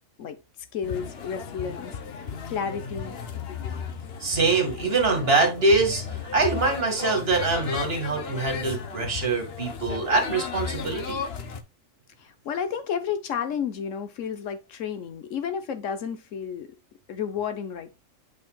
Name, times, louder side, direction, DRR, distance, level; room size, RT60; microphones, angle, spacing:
voice 1, 0.7-2.0 2.5-3.2 12.2-16.7 17.1-18.0, left 7 dB, 75° left, 1.2 m, -31 dB
sound 1, 0.8-11.6, left 6 dB, 55° left, 1.0 m, -35 dB
voice 2, 4.2-6.0 6.3-11.2, right 3 dB, 50° right, 2.0 m, -24 dB
8.4 x 4.9 x 2.3 m
omnidirectional pair, 1.3 m